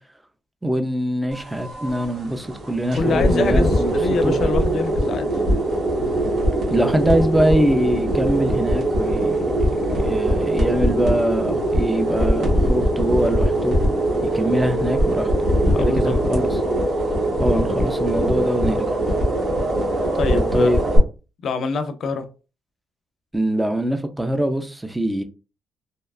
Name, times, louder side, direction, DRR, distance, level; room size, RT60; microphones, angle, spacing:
voice 1, 0.6-3.9 4.2-4.4 6.7-9.7 10.0-13.8 14.2-15.3 15.8-16.5 17.4-19.0 20.5-20.8 23.3-25.2, right 1 dB, 10° right, 0.4 m, -23 dB
sound 1, 1.3-21.0, right 1 dB, 70° right, 1.2 m, -21 dB
voice 2, 2.9-5.3 15.7-16.1 20.1-20.7 21.4-22.2, left 4 dB, 60° left, 0.4 m, -25 dB
2.8 x 2.2 x 2.3 m
cardioid pair, 120°, 0 cm